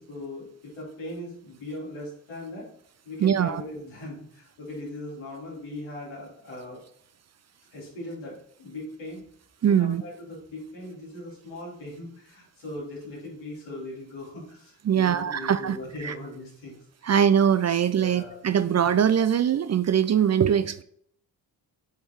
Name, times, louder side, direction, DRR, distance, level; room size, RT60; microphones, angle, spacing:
voice 1, 0.0-2.7 3.0-6.8 7.7-9.2 9.8-17.1 18.0-18.4 18.6-18.8, left 1 dB, 90° left, -6 dB, 3.0 m, -39 dB
voice 2, 3.2-3.6 9.6-10.0 14.9-15.8 16.0-16.1 17.0-20.8, right 8 dB, 40° right, 14 dB, 0.4 m, -22 dB
8.1 x 3.5 x 4.3 m, 0.65 s
supercardioid pair, 45°, 46 cm